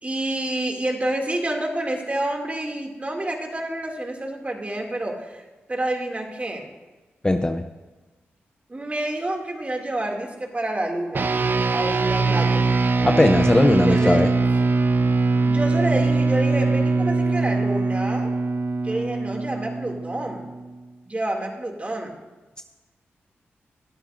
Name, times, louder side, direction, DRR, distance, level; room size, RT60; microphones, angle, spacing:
voice 1, 0.0-5.4 5.7-6.7 8.7-11.3 11.7-12.6 13.7-14.2 15.4-18.3 18.8-20.5 21.1-22.1, right 1 dB, 30° right, 2 dB, 2.4 m, -28 dB
voice 2, 7.2-7.6 13.0-14.3, left 1 dB, 20° left, 7 dB, 0.7 m, -18 dB
sound 1, 11.1-20.8, right 3 dB, 50° right, 0.6 m, -22 dB
18.5 x 11.5 x 2.6 m, 1.2 s
cardioid pair, 50°, 5 cm